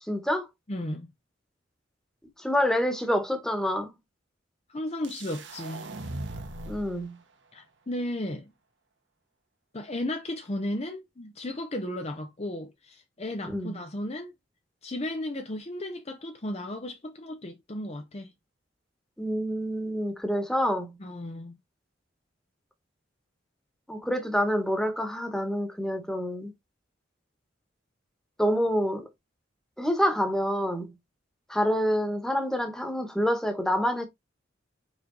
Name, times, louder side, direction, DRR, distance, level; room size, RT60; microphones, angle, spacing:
voice 1, 0.1-0.5 2.4-3.9 6.7-7.2 13.4-13.8 19.2-20.9 23.9-26.5 28.4-29.1 29.8-30.9 31.5-34.1, equal, 5° left, 1.4 m, -27 dB
voice 2, 0.7-1.1 4.7-5.9 7.5-8.5 9.7-14.3 14.8-18.3 21.0-21.6, left 1 dB, 35° left, 0.7 m, -34 dB
sound 1, 5.0-7.0, right 2 dB, 75° right, 1.4 m, -39 dB
5.1 x 4.9 x 3.9 m
head